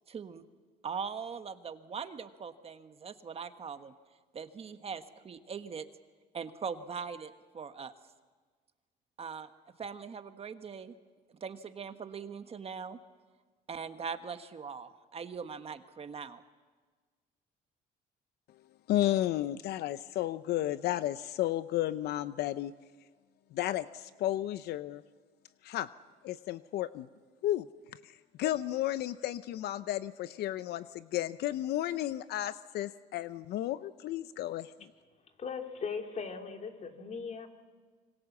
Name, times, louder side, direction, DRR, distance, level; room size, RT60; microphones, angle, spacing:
voice 1, 0.1-0.4 0.8-3.9 4.3-5.9 6.3-7.9 9.2-9.5 9.8-11.0 11.4-13.0 13.7-16.4, right 6 dB, 35° right, 9 dB, 1.3 m, -41 dB
voice 2, 18.9-22.7 23.5-25.0 25.6-25.9 26.2-27.1 27.4-27.7 28.0-34.7, left 13 dB, 75° left, 14 dB, 0.7 m, -33 dB
voice 3, 35.4-37.5, left 5 dB, 40° left, 4 dB, 2.9 m, -38 dB
26.0 x 25.0 x 7.3 m, 1.4 s
cardioid pair, 110°, 17 cm